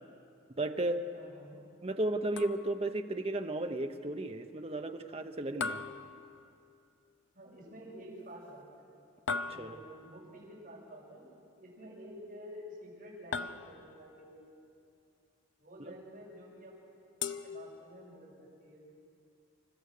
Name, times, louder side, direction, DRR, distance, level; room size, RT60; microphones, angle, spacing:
voice 1, 0.6-1.0 1.8-5.8 9.6-9.8 15.9-16.0, right 2 dB, 30° right, 6 dB, 0.9 m, -34 dB
voice 2, 1.1-1.6 7.3-8.8 9.4-11.2 11.6-14.4 15.6-16.7 17.3-18.8, equal, 50° right, -5 dB, 7.3 m, -50 dB
sound 1, 2.4-3.0 5.6-6.8 9.3-10.1 13.3-14.1 17.2-18.2, left 5 dB, 70° left, 0.6 m, -39 dB
30.0 x 14.0 x 6.7 m, 2.5 s
head